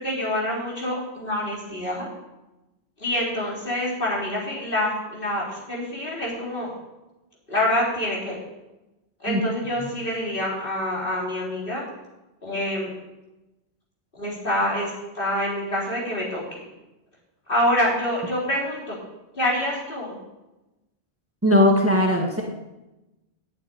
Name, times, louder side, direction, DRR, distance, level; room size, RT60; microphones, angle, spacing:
voice 1, 0.0-2.1 3.0-6.7 7.5-8.4 9.2-11.8 12.4-12.9 14.1-16.6 17.5-19.0 19.3-20.2, left 1 dB, 55° left, -5 dB, 4.1 m, -26 dB
voice 2, 21.4-22.4, left 1 dB, 15° right, 0 dB, 1.4 m, -19 dB
8.6 x 8.5 x 9.2 m, 1.0 s
omnidirectional pair, 1.1 m